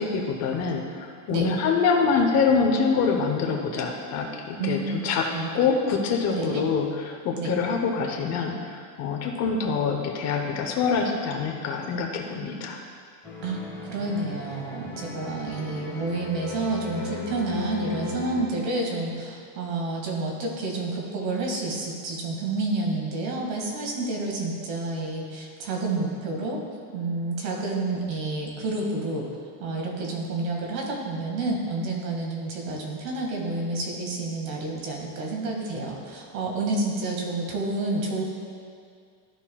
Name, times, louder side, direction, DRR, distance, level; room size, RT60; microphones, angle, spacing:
voice 1, 0.0-5.3 5.5-12.8, left 5 dB, 35° left, 2 dB, 0.8 m, -25 dB
sound 1, 13.2-18.4, left 4 dB, 5° left, 1.4 m, -37 dB
voice 2, 13.4-26.6 26.9-29.3 29.6-38.2, right 2 dB, 90° right, 0 dB, 1.9 m, -29 dB
13.5 x 5.8 x 2.3 m, 2.2 s
supercardioid pair, 155°, 49 cm